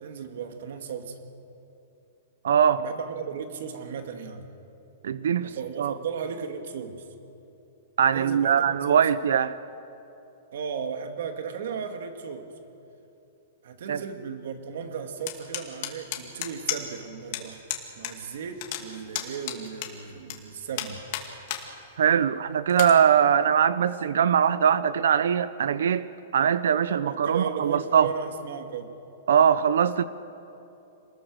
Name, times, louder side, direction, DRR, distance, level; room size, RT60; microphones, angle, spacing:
voice 1, 0.0-1.2 2.8-4.5 5.4-7.0 8.1-9.0 10.5-12.5 13.6-17.6 18.0-21.0 26.9-28.9, right 6 dB, 65° right, 6 dB, 2.2 m, -35 dB
voice 2, 2.4-2.8 5.0-5.9 8.0-9.5 13.9-14.0 22.0-26.1 26.3-28.1 29.3-30.0, right 8 dB, 85° right, 15 dB, 0.6 m, -22 dB
sound 1, 15.3-17.0 17.3-17.4 17.7-18.1 18.4-20.4 20.8-21.6 22.1-22.2 22.7-22.9, left 13 dB, 40° left, 2.4 m, -32 dB
28.0 x 20.5 x 6.3 m, 2.8 s
supercardioid pair, 170°, 0 cm